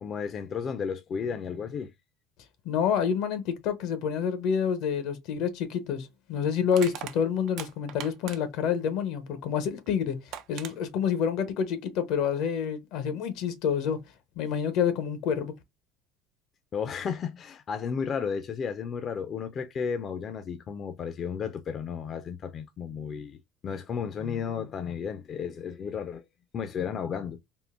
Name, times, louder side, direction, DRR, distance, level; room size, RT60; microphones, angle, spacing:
voice 1, 0.0-1.9 16.7-26.2 26.5-27.4, left 6 dB, 40° left, 0.5 m, -33 dB
voice 2, 2.6-10.2 10.5-14.0 14.4-15.5, left 7 dB, 70° left, 0.8 m, -28 dB
Crushing, 5.3-5.5 6.7-8.7 9.9-10.0 10.3-10.7, right 10 dB, 65° right, 0.4 m, -40 dB
3.6 x 2.1 x 2.4 m
supercardioid pair, 105°, 0 cm